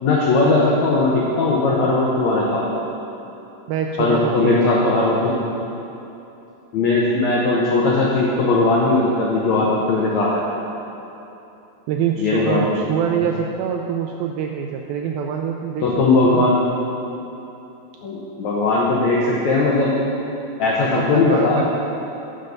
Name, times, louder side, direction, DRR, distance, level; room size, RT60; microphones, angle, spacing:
voice 1, 0.0-2.7 4.0-5.3 6.7-10.4 12.2-12.8 15.8-16.6 18.0-19.9 20.6-21.6, left 3 dB, 80° left, -4 dB, 1.6 m, -18 dB
voice 2, 3.7-5.2 11.9-15.9 16.1-16.5 21.0-21.6, right 8 dB, 90° right, 2 dB, 2.1 m, -25 dB
13.0 x 6.5 x 5.3 m, 2.9 s
omnidirectional pair, 4.7 m